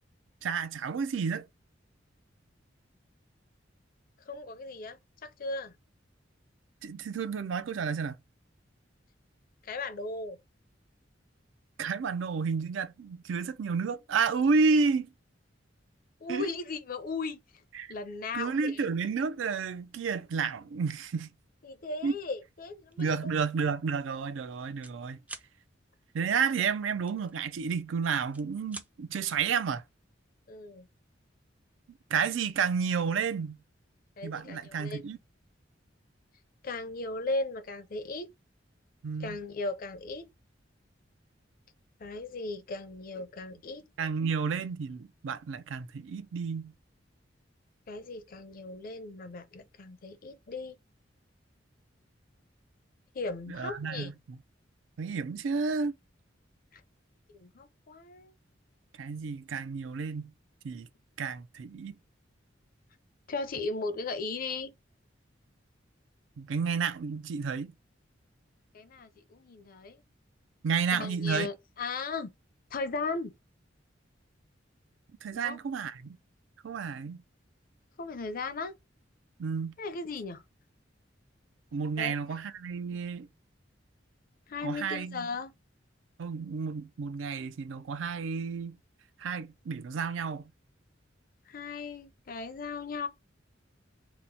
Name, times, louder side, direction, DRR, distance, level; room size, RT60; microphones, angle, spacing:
voice 1, 0.4-1.5 6.8-8.2 11.8-15.1 16.3-16.5 17.7-17.9 18.3-21.3 22.0-22.1 23.0-25.2 26.1-29.8 32.1-33.6 34.2-35.2 39.0-39.4 44.0-46.7 53.5-54.4 55.0-56.0 59.0-60.3 60.6-60.9 61.2-62.0 66.4-67.7 70.6-71.5 75.2-76.2 76.6-77.2 79.4-79.7 81.7-83.3 84.6-85.3 86.2-88.8 89.2-90.5, right 5 dB, 85° right, 0.4 m, -31 dB
voice 2, 4.3-5.7 9.6-10.4 16.2-17.4 17.9-18.9 21.6-23.3 30.5-30.9 34.2-35.0 36.6-38.3 39.2-40.3 42.0-43.8 47.9-50.8 53.1-54.1 56.7-56.8 57.4-58.3 63.3-64.7 68.7-70.0 70.9-72.3 72.7-73.3 75.3-75.6 78.0-78.7 79.8-80.4 82.0-82.1 82.9-83.0 84.5-85.5 91.5-93.1, left 3 dB, 50° left, 0.5 m, -37 dB
sound 1, 22.9-23.2 23.6-23.8 24.0-25.0 25.2-25.5 27.1-27.9 28.2-28.9, right 2 dB, 10° right, 0.3 m, -46 dB
2.9 x 2.0 x 3.9 m
head